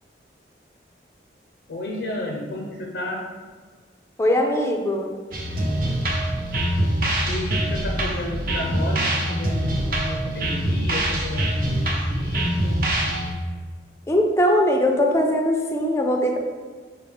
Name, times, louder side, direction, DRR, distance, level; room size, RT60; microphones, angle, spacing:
voice 1, 1.7-3.3 7.3-12.8, left 1 dB, 70° left, 0 dB, 0.5 m, -32 dB
voice 2, 4.2-5.1 14.1-16.4, left 1 dB, 15° left, 2 dB, 0.4 m, -20 dB
sound 1, 5.3-13.3, right 1 dB, 50° right, 0.8 m, -24 dB
4.9 x 2.8 x 3.5 m, 1.5 s
head